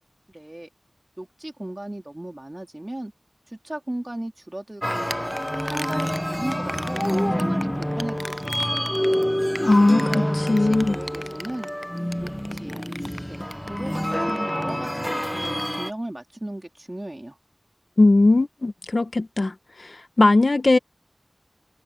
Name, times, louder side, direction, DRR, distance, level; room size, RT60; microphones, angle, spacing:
voice 1, 0.3-0.7 1.2-3.1 3.5-5.3 5.7-7.1 7.4-9.0 9.9-11.7 12.2-12.8 13.3-13.4 13.7-17.4, right 1 dB, 35° right, 3.2 m, -36 dB
sound 1, 4.8-15.9, equal, 10° left, 0.7 m, -27 dB
voice 2, 9.6-11.0 18.0-19.5 19.8-20.8, left 2 dB, 80° left, 0.9 m, -19 dB
wide cardioid pair, 50°, 0 cm